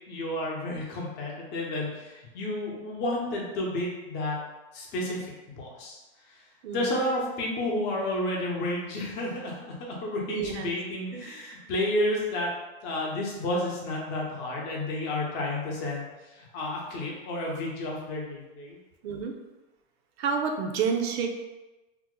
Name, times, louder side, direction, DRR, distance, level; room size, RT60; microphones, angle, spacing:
voice 1, 0.1-4.4 4.7-6.0 6.3-6.4 6.7-12.5 12.8-18.8, left 1 dB, 35° left, -2 dB, 0.7 m, -31 dB
voice 2, 6.6-7.0 10.3-10.7 11.1-11.6 19.0-19.3 20.2-21.3, right 6 dB, 80° right, 3 dB, 0.6 m, -30 dB
2.8 x 2.1 x 3.7 m, 1.1 s
supercardioid pair, 155°, 31 cm